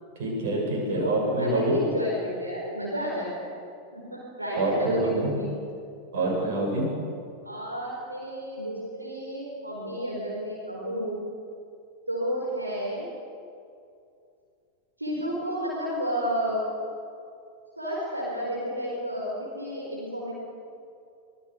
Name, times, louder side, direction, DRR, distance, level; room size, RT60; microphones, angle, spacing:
voice 1, 0.2-1.8 4.6-5.3 6.1-6.9, right 2 dB, 55° right, 0 dB, 7.7 m, -26 dB
voice 2, 0.9-3.5 3.9-5.5 6.1-6.2 7.4-11.2 12.1-13.1 15.0-16.6 17.8-20.3, equal, 85° right, -3 dB, 4.7 m, -31 dB
25.5 x 20.0 x 6.7 m, 2.5 s
figure-of-eight pair, 90°, 0 cm